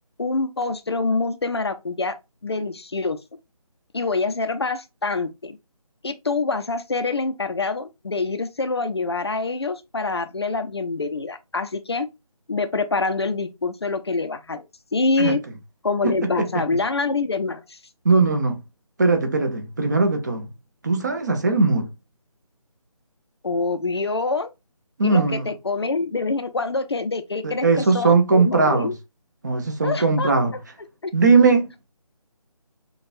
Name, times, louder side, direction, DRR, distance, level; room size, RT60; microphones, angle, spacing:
voice 1, 0.2-2.1 2.4-3.2 3.9-5.6 6.0-12.1 12.5-14.7 14.9-15.4 15.8-17.8 23.4-24.5 25.0-29.0 29.8-30.3 31.0-31.1, left 3 dB, 45° left, 0.5 m, -25 dB
voice 2, 18.0-18.6 19.0-20.5 20.8-21.9 25.0-25.5 27.4-28.9 29.4-30.5 31.1-31.9, right 4 dB, 30° right, 0.7 m, -19 dB
6.5 x 2.3 x 2.5 m
figure-of-eight pair, 160°, 19 cm